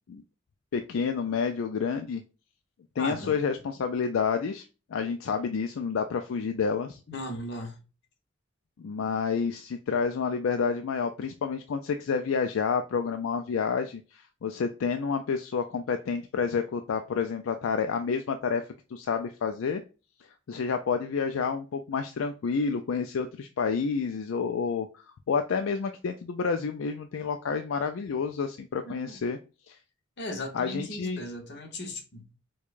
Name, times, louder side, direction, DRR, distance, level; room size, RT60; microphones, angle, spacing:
voice 1, 0.7-2.2 3.0-4.7 4.9-7.0 8.8-18.7 18.9-19.8 20.5-29.4 29.7-29.8 30.5-31.2, left 5 dB, 80° left, 0.4 m, -29 dB
voice 2, 3.0-3.4 7.1-7.8 28.8-29.2 30.2-32.3, left 1 dB, 60° left, 1.0 m, -37 dB
4.6 x 2.3 x 2.4 m
head